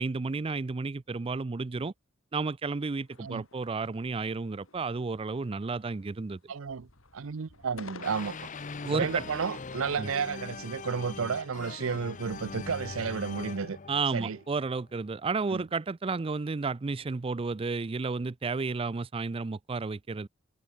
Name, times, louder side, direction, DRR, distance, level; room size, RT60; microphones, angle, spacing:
voice 1, 0.0-1.9 2.3-6.4 8.8-9.2 10.0-10.1 13.9-20.3, right 4 dB, 25° right, 0.4 m, -32 dB
sound 1, 3.0-4.2 4.6-5.1 5.3-6.3 6.6-9.1, left 3 dB, 90° left, 4.8 m, -51 dB
voice 2, 6.5-6.9 7.1-8.5 8.9-13.8 14.1-14.4 15.5-15.6, right 5 dB, 85° right, 0.6 m, -32 dB
sound 2, 8.0-15.0, left 4 dB, 40° left, 0.8 m, -42 dB
head